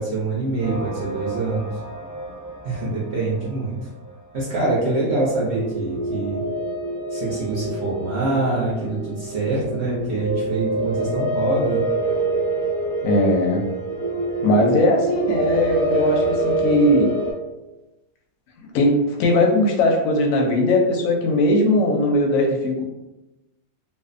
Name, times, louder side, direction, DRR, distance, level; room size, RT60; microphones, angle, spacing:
voice 1, 0.0-1.7 2.6-3.8 4.3-6.4 7.1-11.8, right 2 dB, 65° right, -6 dB, 0.6 m, -25 dB
sound 1, 0.6-4.0 5.2-17.3, right 2 dB, 25° right, 0.8 m, -26 dB
voice 2, 13.0-13.7 14.4-17.1 18.7-22.8, left 1 dB, 70° left, 1 dB, 0.9 m, -19 dB
2.5 x 2.3 x 2.4 m, 1.0 s
omnidirectional pair, 1.7 m